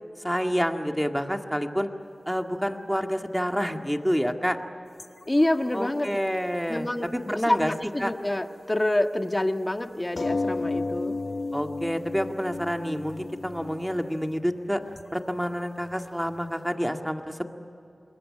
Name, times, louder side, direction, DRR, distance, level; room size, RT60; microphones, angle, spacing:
voice 1, 0.2-1.9 2.3-4.6 5.7-7.7 8.0-8.1 11.5-14.8 15.1-17.5, equal, ahead, 4 dB, 2.0 m, -28 dB
sound 1, 5.0-6.6 7.1-8.3 8.6-8.7 9.2-9.3 10.0-16.7, left 3 dB, 70° left, 0.8 m, -34 dB
voice 2, 5.3-6.1 6.7-11.2, left 1 dB, 25° left, 6 dB, 1.6 m, -27 dB
27.0 x 21.0 x 8.7 m, 2.8 s
wide cardioid pair, 50°, 0 cm